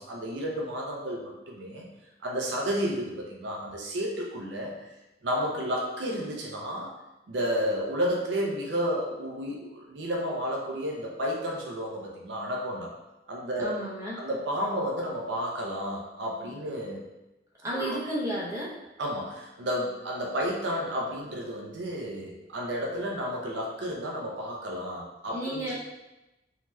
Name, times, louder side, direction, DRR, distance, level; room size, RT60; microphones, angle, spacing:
voice 1, 0.0-1.9 2.2-4.9 5.2-6.9 7.3-12.9 13.3-13.7 14.2-17.0 17.7-18.0 19.0-25.7, equal, 70° right, -2 dB, 0.5 m, -31 dB
voice 2, 13.6-14.2 17.6-18.8 25.3-25.7, right 1 dB, 20° right, -6 dB, 0.6 m, -32 dB
3.2 x 2.7 x 2.2 m, 0.97 s
head